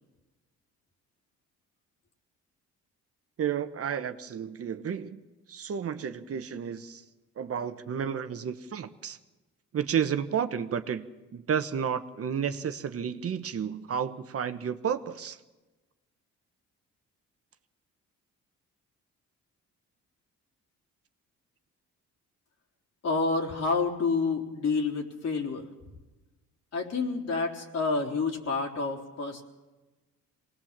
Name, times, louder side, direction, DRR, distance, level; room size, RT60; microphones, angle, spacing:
voice 1, 3.4-5.2 5.5-7.0 7.4-9.2 9.7-11.1 11.3-15.4, right 8 dB, 50° right, 9 dB, 1.1 m, -31 dB
voice 2, 23.0-25.7 26.7-29.4, left 4 dB, 55° left, 1 dB, 3.7 m, -29 dB
24.5 x 19.0 x 7.4 m, 1.1 s
cardioid pair, 90°, 30 cm